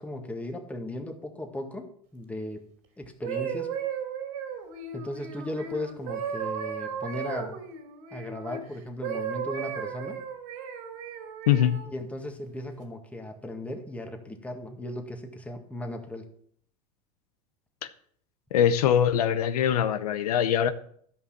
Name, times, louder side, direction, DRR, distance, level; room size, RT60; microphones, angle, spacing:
voice 1, 0.0-2.6 3.0-3.7 4.9-7.6 8.1-10.2 11.9-16.3, left 1 dB, 5° left, 4 dB, 1.8 m, -37 dB
sound 1, 3.0-8.6 9.0-11.9 12.5-12.8, right 7 dB, 70° right, 2.9 m, -35 dB
voice 2, 11.5-11.8 18.5-20.7, left 9 dB, 90° left, 11 dB, 0.8 m, -22 dB
12.5 x 5.6 x 7.3 m, 0.63 s
supercardioid pair, 115°, 19 cm